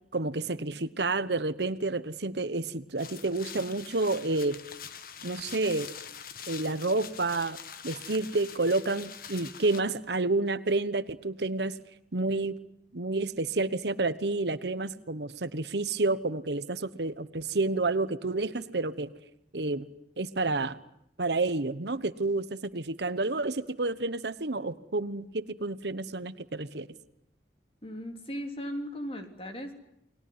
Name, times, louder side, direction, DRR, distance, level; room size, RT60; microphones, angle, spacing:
voice 1, 0.1-4.6 5.2-5.9 6.5-7.6 7.8-11.7 12.1-12.6 12.9-19.1 19.5-19.9 20.2-20.8 21.2-26.9, right 2 dB, 70° right, 14 dB, 1.2 m, -29 dB
sound 1, 3.0-9.8, left 8 dB, 55° left, 1.6 m, -44 dB
voice 2, 27.8-29.7, equal, 35° left, 5 dB, 3.6 m, -37 dB
30.0 x 20.5 x 9.6 m, 0.77 s
head